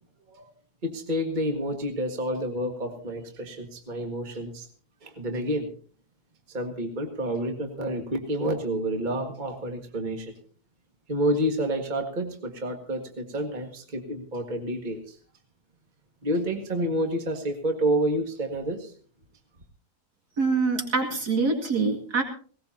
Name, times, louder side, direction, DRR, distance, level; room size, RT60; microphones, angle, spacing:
voice 1, 0.8-4.7 5.0-5.7 6.5-10.3 11.1-15.2 16.2-18.9, right 1 dB, 30° right, 4 dB, 1.9 m, -29 dB
voice 2, 20.4-22.2, right 4 dB, 75° right, 2 dB, 2.7 m, -25 dB
19.5 x 18.5 x 2.8 m, 0.43 s
omnidirectional pair, 1.7 m